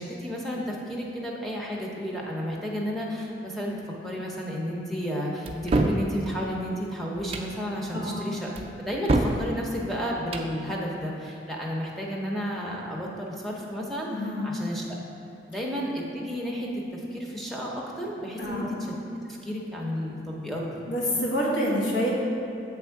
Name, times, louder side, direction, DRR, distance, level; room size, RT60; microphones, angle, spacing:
voice 1, 0.0-3.8 4.0-8.5 8.8-14.1 14.4-14.8 15.5-18.7 19.3-20.8, equal, ahead, -3 dB, 0.6 m, -32 dB
sound 1, 5.5-6.0 7.2-7.5 8.6-9.4 10.2-10.5, right 2 dB, 35° right, 0.3 m, -25 dB
voice 2, 14.1-14.4 18.4-18.7 20.9-22.1, equal, 90° left, -5 dB, 1.3 m, -27 dB
7.9 x 3.5 x 4.6 m, 2.8 s
head